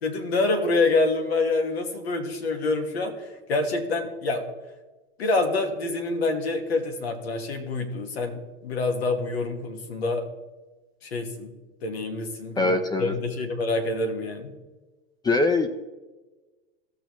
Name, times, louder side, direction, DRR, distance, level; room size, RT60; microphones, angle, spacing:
voice 1, 0.0-4.4 5.2-10.2 11.0-11.5 11.8-12.7 13.0-14.5, left 3 dB, 80° left, 5 dB, 1.7 m, -26 dB
voice 2, 12.6-13.1 15.2-15.7, left 2 dB, 15° left, 7 dB, 0.6 m, -22 dB
15.5 x 7.0 x 3.1 m, 1.2 s
hypercardioid pair, 115°, 30 cm